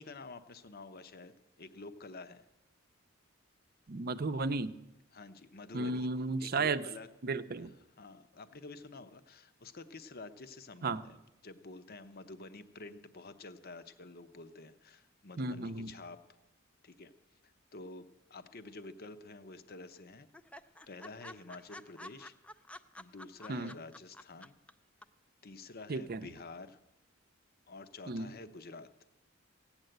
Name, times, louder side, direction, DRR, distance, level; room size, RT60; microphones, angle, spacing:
voice 1, 0.0-2.4 5.1-6.1 6.4-7.1 7.6-7.7 8.0-11.2 11.4-16.2 16.8-17.1 17.7-20.3 20.9-22.3 23.0-24.5 25.4-26.8 27.7-29.0, left 3 dB, 50° left, 11 dB, 0.8 m, -49 dB
voice 2, 3.9-4.8 5.7-6.8 7.2-7.7 10.8-11.0 15.4-15.9 23.5-23.7 25.9-26.3 28.1-28.3, right 3 dB, 50° right, 11 dB, 0.7 m, -34 dB
sound 1, 18.6-19.3 19.6-19.7 19.9-20.0 20.3-24.7 25.0-25.1, left 1 dB, 5° left, 0.5 m, -50 dB
16.0 x 9.0 x 7.9 m, 0.95 s
head